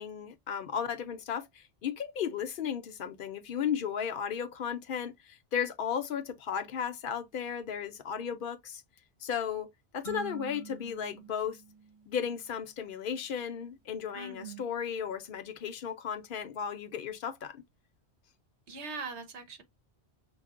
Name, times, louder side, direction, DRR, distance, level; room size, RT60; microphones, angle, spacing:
voice 1, 0.0-8.8 9.2-11.6 12.1-17.6, left 8 dB, 55° left, 0.7 m, -35 dB
sound 1, 10.0-12.7, right 5 dB, 40° right, 1.7 m, -47 dB
voice 2, 14.1-14.8 18.7-19.6, right 4 dB, 80° right, 1.2 m, -41 dB
6.1 x 2.1 x 2.4 m
omnidirectional pair, 1.1 m